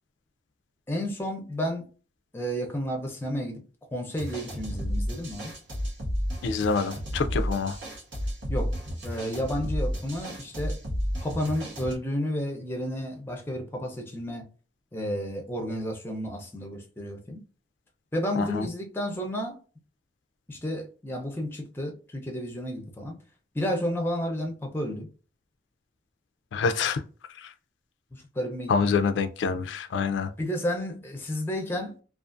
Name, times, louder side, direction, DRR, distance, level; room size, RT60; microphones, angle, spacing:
voice 1, 0.9-1.8 2.3-3.6 3.9-5.5 8.5-8.7 9.0-10.8 11.2-14.4 14.9-17.4 18.1-19.6 20.5-23.2 23.5-25.1 28.1-28.7 30.4-31.9, equal, 10° left, 0.5 m, -31 dB
sound 1, 4.2-11.9, equal, 90° right, 1.0 m, -32 dB
voice 2, 6.4-7.8 18.4-18.7 26.5-27.0 27.4-27.5 28.7-30.3, left 5 dB, 85° left, 0.3 m, -26 dB
2.4 x 2.4 x 2.4 m
head